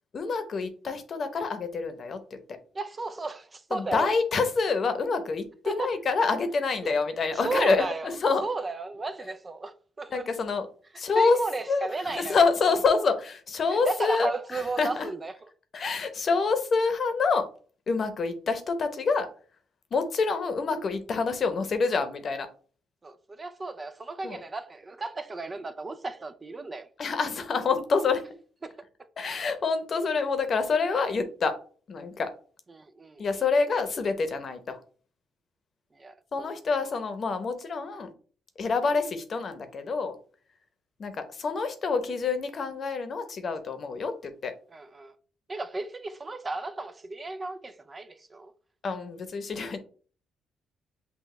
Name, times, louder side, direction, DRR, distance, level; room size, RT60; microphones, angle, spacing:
voice 1, 0.1-2.2 3.7-8.5 10.1-10.7 11.0-11.4 11.7-15.1 15.7-17.5 17.9-19.3 19.9-22.5 24.2-24.4 27.0-28.2 29.2-31.5 31.9-32.3 33.2-34.8 36.3-38.1 38.6-40.2 41.0-44.5 48.8-49.8, left 4 dB, 50° left, 0.8 m, -27 dB
voice 2, 2.7-4.1 5.6-6.0 6.8-6.9 7.4-8.1 8.4-10.3 11.1-12.4 13.8-15.3 23.0-26.9 28.6-28.8 32.7-33.3 35.9-36.5 44.7-45.2 45.5-48.5, right 3 dB, 30° right, 0.4 m, -34 dB
5.9 x 2.3 x 3.2 m
cardioid pair, 90°, 0 cm